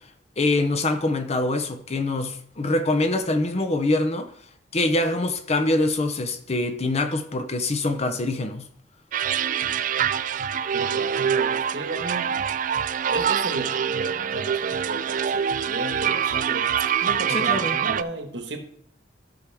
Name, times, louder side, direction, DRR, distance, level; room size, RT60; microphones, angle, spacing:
voice 1, 0.4-4.3 4.7-8.7 17.3-17.8, left 2 dB, 35° left, 0.7 m, -24 dB
sound 1, 9.1-18.0, right 8 dB, 45° right, 0.3 m, -25 dB
voice 2, 10.7-12.4 13.1-16.7 17.0-18.6, right 2 dB, 70° right, 1.4 m, -34 dB
13.0 x 6.0 x 3.5 m
head